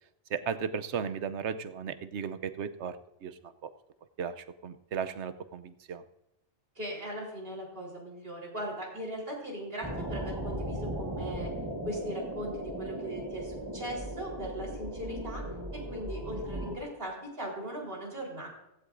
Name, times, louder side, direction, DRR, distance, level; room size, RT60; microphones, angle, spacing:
voice 1, 0.3-3.7 4.2-6.0, right 7 dB, 80° right, 12 dB, 1.0 m, -36 dB
voice 2, 6.8-11.5 11.8-15.4 15.7-18.5, equal, 55° right, -3 dB, 4.2 m, -39 dB
sound 1, 9.8-16.7, right 1 dB, 20° right, 1.7 m, -37 dB
16.0 x 16.0 x 2.6 m, 0.89 s
omnidirectional pair, 1.2 m